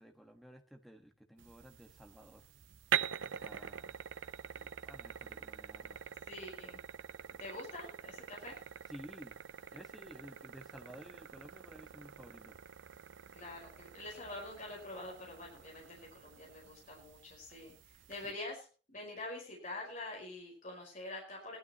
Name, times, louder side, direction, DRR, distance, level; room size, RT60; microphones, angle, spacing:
voice 1, 0.0-2.4 3.4-4.0 4.5-6.0 8.9-9.4 9.7-12.6 18.0-18.3, equal, ahead, 4 dB, 1.4 m, -54 dB
sound 1, 1.4-18.3, right 8 dB, 80° right, 0.6 m, -44 dB
voice 2, 6.3-6.8 7.4-8.6 13.3-21.6, left 2 dB, 40° left, -2 dB, 5.0 m, -46 dB
19.0 x 12.5 x 3.0 m, 0.35 s
head